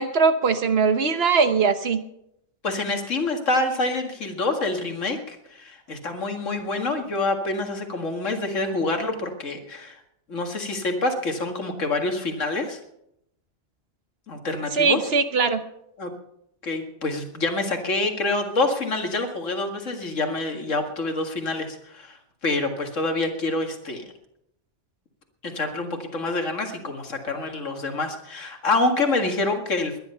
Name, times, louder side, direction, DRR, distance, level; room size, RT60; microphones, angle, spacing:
voice 1, 0.0-2.0 14.7-15.6, right 5 dB, 55° right, 10 dB, 1.2 m, -21 dB
voice 2, 2.6-10.0 10.3-12.8 14.3-15.1 16.0-16.1 16.6-24.0 25.4-29.9, left 2 dB, 85° left, 4 dB, 2.3 m, -27 dB
20.5 x 10.5 x 5.6 m, 0.78 s
omnidirectional pair, 1.3 m